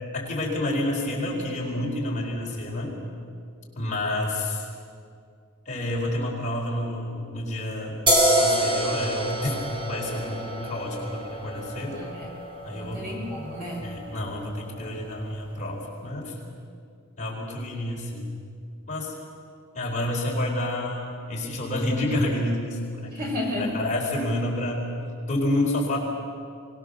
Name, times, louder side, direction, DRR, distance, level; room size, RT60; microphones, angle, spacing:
voice 1, 0.1-3.0 3.8-4.7 5.6-8.0 8.4-12.0 12.6-13.0 13.8-16.4 17.2-18.3 18.9-19.1 19.7-23.2 23.6-24.9 25.3-26.0, left 1 dB, 35° left, -3 dB, 4.6 m, -29 dB
sound 1, 8.1-15.4, equal, 25° right, 3.6 m, -28 dB
voice 2, 11.8-12.3 12.7-13.9 23.0-23.8, left 1 dB, 45° right, -1 dB, 6.1 m, -33 dB
24.0 x 20.5 x 7.0 m, 2.3 s
head